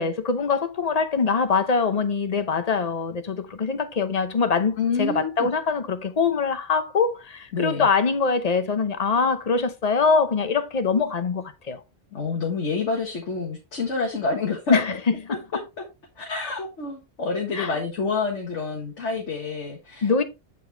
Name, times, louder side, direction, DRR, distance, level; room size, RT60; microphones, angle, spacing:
voice 1, 0.0-11.8 14.7-15.4 17.5-17.8 20.0-20.2, left 5 dB, 40° left, 0.8 m, -23 dB
voice 2, 4.8-5.5 7.5-7.9 12.1-15.0 15.3-15.4 16.2-20.2, left 4 dB, 85° left, 1.7 m, -28 dB
8.9 x 4.3 x 3.3 m
omnidirectional pair, 1.2 m